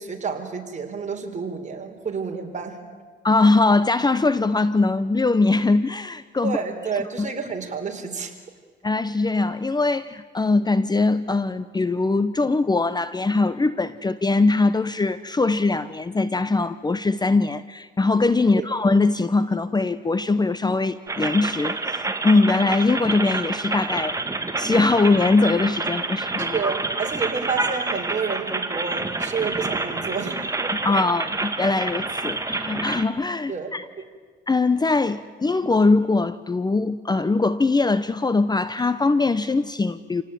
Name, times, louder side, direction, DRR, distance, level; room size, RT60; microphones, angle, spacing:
voice 1, 0.0-2.8 6.4-8.3 18.5-18.7 26.4-30.5 33.5-33.7 34.0-34.1, right 5 dB, 35° right, 3 dB, 4.0 m, -29 dB
voice 2, 3.2-6.6 7.2-7.3 8.8-24.2 24.6-26.6 30.8-33.8 34.5-40.2, left 3 dB, 20° left, 14 dB, 0.8 m, -21 dB
sound 1, 21.1-33.0, right 3 dB, 15° right, 2.0 m, -28 dB
28.0 x 18.0 x 9.3 m, 1.5 s
cardioid pair, 90°, 20 cm